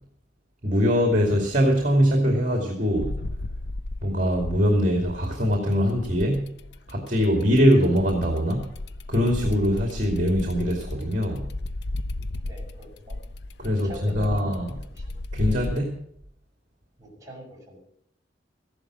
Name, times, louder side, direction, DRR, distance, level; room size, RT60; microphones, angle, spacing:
voice 1, 0.6-3.1 4.0-6.5 6.9-8.7 9.1-11.5 13.6-14.7 15.3-16.0, equal, 40° right, 1 dB, 2.5 m, -22 dB
sound 1, 3.0-5.4 5.9-15.8, left 2 dB, 65° left, 0.6 m, -35 dB
voice 2, 12.4-13.2 13.6-14.5 14.8-15.1 17.0-17.8, equal, 20° right, -2 dB, 5.7 m, -45 dB
15.0 x 11.5 x 6.4 m, 0.70 s
head